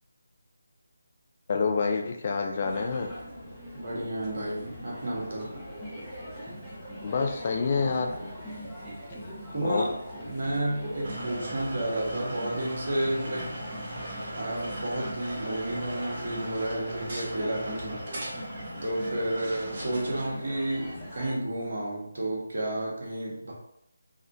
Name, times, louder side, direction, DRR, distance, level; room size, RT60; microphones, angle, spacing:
voice 1, 1.5-3.1 7.0-8.1 9.6-9.9, left 4 dB, 35° left, 3 dB, 0.3 m, -27 dB
sound 1, 2.6-21.3, equal, 5° left, 0.7 m, -41 dB
voice 2, 3.7-5.5 9.5-9.9 10.2-13.5 14.4-18.0 18.8-23.5, right 1 dB, 55° right, -4 dB, 1.1 m, -31 dB
sound 2, 11.0-20.3, right 1 dB, 40° right, 0.8 m, -39 dB
3.5 x 2.2 x 2.6 m, 0.77 s
figure-of-eight pair, 155°, 0 cm